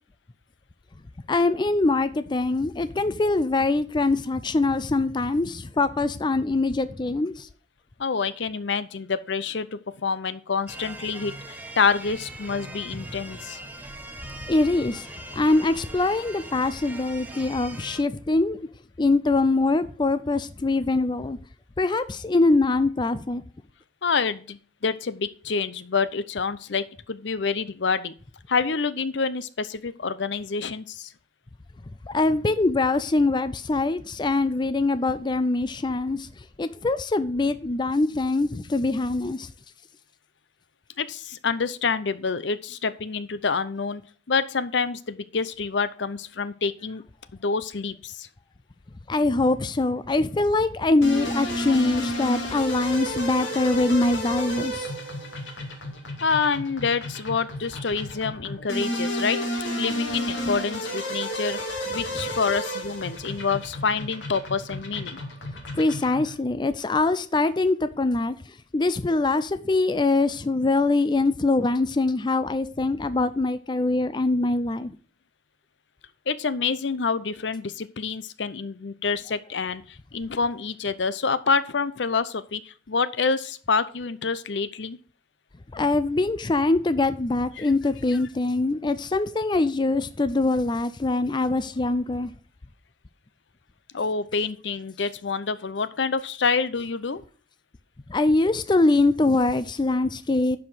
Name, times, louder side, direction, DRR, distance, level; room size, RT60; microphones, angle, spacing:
voice 1, 1.3-7.5 14.5-15.1 15.3-18.6 19.0-21.4 21.8-23.4 32.1-36.3 36.6-39.5 49.1-54.9 65.7-68.4 68.7-75.0 85.7-92.3 98.1-100.6, left 2 dB, 25° left, 0.4 m, -23 dB
voice 2, 8.0-9.7 10.0-11.3 11.8-13.6 24.0-28.1 28.5-31.1 41.0-44.0 44.3-47.0 47.3-48.3 56.2-59.4 59.8-65.2 76.3-85.0 87.6-87.7 93.9-97.2, left 5 dB, 70° left, 0.7 m, -27 dB
sound 1, 10.7-18.0, right 1 dB, 10° right, 1.1 m, -40 dB
sound 2, 51.0-66.4, equal, 90° left, 2.6 m, -32 dB
10.5 x 5.0 x 5.6 m
head